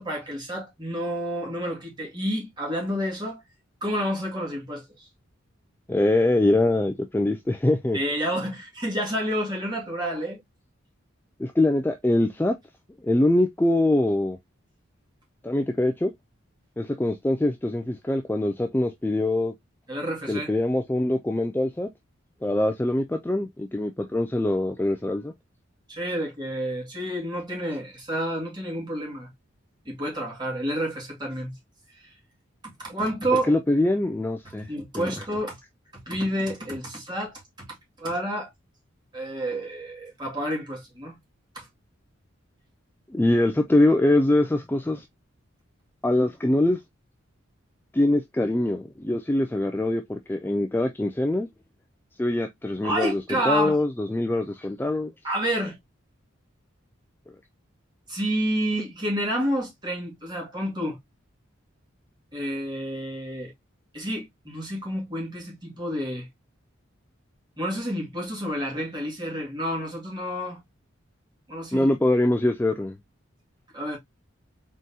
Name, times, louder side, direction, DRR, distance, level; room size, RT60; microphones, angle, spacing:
voice 1, 0.0-3.4 3.8-5.1 7.9-10.4 19.9-20.5 25.9-29.3 29.9-31.5 32.0-32.1 32.6-33.5 34.4-35.6 36.1-38.5 39.1-41.2 41.5-41.7 52.8-53.8 55.2-55.8 58.1-61.0 62.3-63.5 63.9-66.3 67.6-70.6 71.5-71.9 73.7-74.0, equal, 20° right, 1.9 m, -29 dB
voice 2, 5.9-8.0 11.4-12.5 13.0-14.4 15.4-16.1 16.8-19.5 20.3-21.9 22.4-25.3 33.5-35.1 43.1-45.0 46.0-46.8 47.9-51.5 52.2-55.1 71.7-72.9, left 1 dB, 10° left, 0.3 m, -23 dB
4.0 x 3.7 x 2.6 m
head